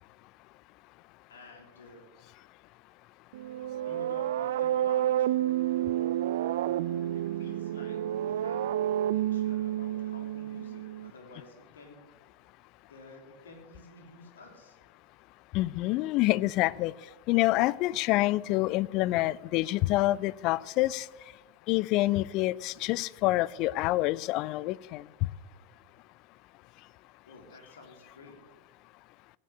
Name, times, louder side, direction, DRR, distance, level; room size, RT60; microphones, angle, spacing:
voice 1, 1.3-2.2 3.8-5.4 5.7-6.0 7.1-12.1 12.9-14.8 27.2-28.4, left 3 dB, 65° left, 3 dB, 3.2 m, -51 dB
sound 1, 3.3-11.1, right 12 dB, 55° right, 0.5 m, -30 dB
voice 2, 15.5-16.9 17.3-21.1 21.7-25.0, left 18 dB, 40° left, 22 dB, 0.4 m, -27 dB
15.5 x 9.7 x 8.5 m, 1.2 s
figure-of-eight pair, 90°, 0 cm